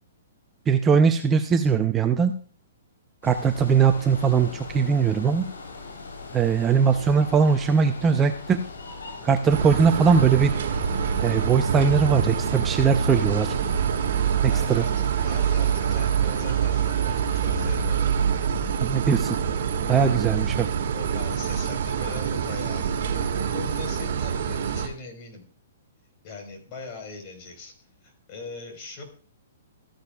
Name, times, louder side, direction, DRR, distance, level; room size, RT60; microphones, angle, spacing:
voice 1, 0.7-2.3 3.2-5.5 6.3-8.6 9.2-10.6 11.2-13.5 14.4-14.8 18.8-19.4 19.9-20.7, right 6 dB, 15° right, 8 dB, 0.6 m, -20 dB
sound 1, 3.2-17.9, left 3 dB, 90° left, 3.5 m, -40 dB
sound 2, 9.5-24.9, right 7 dB, 60° right, 1.7 m, -25 dB
voice 2, 14.5-18.1 20.9-25.5 26.2-27.7 28.0-29.0, left 3 dB, 40° left, 3 dB, 4.2 m, -40 dB
14.5 x 10.5 x 2.3 m, 0.42 s
hypercardioid pair, 145°, 0 cm